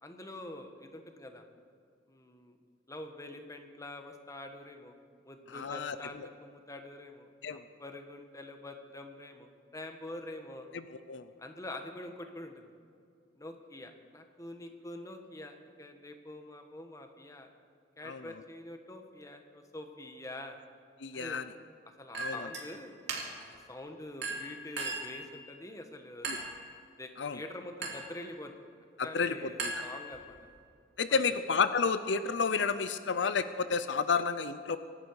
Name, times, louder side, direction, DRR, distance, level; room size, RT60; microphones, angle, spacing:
voice 1, 0.0-1.4 2.1-2.5 2.9-5.0 5.2-7.3 7.8-10.7 11.4-12.7 13.3-17.5 18.0-20.6 21.1-21.4 22.0-22.9 23.4-26.3 27.0-28.5 29.0-30.4 31.1-31.4, left 1 dB, 20° left, 5 dB, 1.3 m, -45 dB
voice 2, 5.5-6.0 7.4-7.6 11.1-11.3 18.0-18.2 21.0-21.4 22.2-22.5 26.3-26.4 27.2-27.4 29.0-29.4 29.6-29.8 31.0-34.8, left 5 dB, 75° left, 12 dB, 0.6 m, -31 dB
Chink clink, 22.1-22.7 23.1-23.5 24.2-25.2 26.2-26.6 27.8-28.2 29.6-30.4, right 3 dB, 65° right, 2.8 m, -37 dB
24.5 x 11.5 x 4.8 m, 2.3 s
head